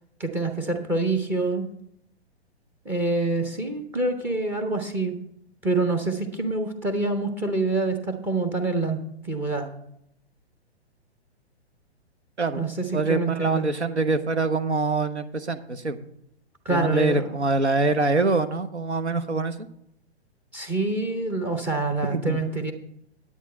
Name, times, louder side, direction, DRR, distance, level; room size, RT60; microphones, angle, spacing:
voice 1, 0.2-1.7 2.9-5.2 5.6-9.7 12.6-13.7 16.7-17.3 20.5-22.7, right 2 dB, 5° right, 7 dB, 0.5 m, -26 dB
voice 2, 12.9-16.0 16.7-19.6 22.1-22.4, right 3 dB, 85° right, 11 dB, 0.9 m, -24 dB
10.0 x 8.7 x 4.3 m, 0.75 s
figure-of-eight pair, 120°, 33 cm